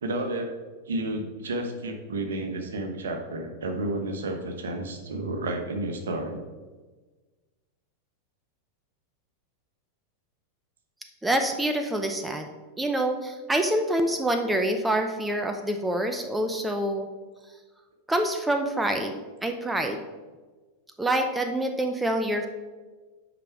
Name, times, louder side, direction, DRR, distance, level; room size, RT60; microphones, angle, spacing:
voice 1, 0.0-0.5 0.9-6.4, right 2 dB, 65° right, 5 dB, 1.2 m, -31 dB
voice 2, 11.2-12.5 12.8-17.1 18.1-20.0 21.0-22.5, right 1 dB, 5° right, 5 dB, 0.6 m, -26 dB
8.9 x 5.2 x 4.6 m, 1.3 s
figure-of-eight pair, 90°, 0 cm